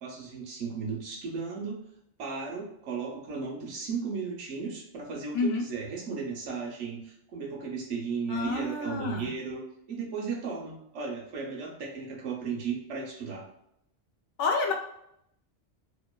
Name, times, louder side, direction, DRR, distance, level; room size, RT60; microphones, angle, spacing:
voice 1, 0.0-1.8 2.2-13.5, right 5 dB, 85° right, 0 dB, 1.0 m, -35 dB
voice 2, 8.3-9.3 14.4-14.7, left 3 dB, 85° left, 2 dB, 0.9 m, -28 dB
2.8 x 2.2 x 2.2 m, 0.76 s
omnidirectional pair, 1.2 m